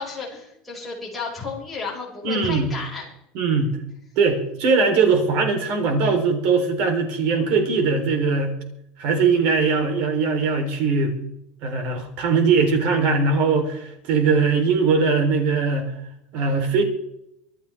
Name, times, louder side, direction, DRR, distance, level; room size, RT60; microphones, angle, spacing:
voice 1, 0.0-3.1 3.6-3.7, left 4 dB, ahead, -6 dB, 5.6 m, -33 dB
voice 2, 2.2-2.7 3.3-3.7 4.2-8.6 9.0-11.2 11.6-15.9 16.3-16.8, right 4 dB, 50° right, 4 dB, 3.7 m, -20 dB
25.0 x 11.0 x 3.6 m, 0.79 s
cardioid pair, 175°, 3 cm